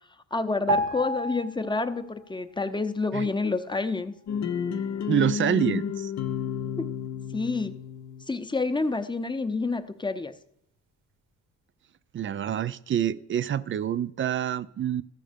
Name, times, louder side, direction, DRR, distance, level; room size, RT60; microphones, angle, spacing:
voice 1, 0.3-4.1 6.8-6.9 7.3-7.7 8.3-10.3, left 3 dB, 15° left, 0.7 m, -28 dB
sound 1, 0.7-2.3 2.6-2.8, right 1 dB, 90° right, 1.1 m, -30 dB
sound 2, 4.3-8.2, left 7 dB, 65° left, 0.7 m, -31 dB
voice 2, 5.1-6.1 12.1-15.0, right 9 dB, 40° right, 0.4 m, -27 dB
14.0 x 5.3 x 5.1 m
cardioid pair, 90°, 30 cm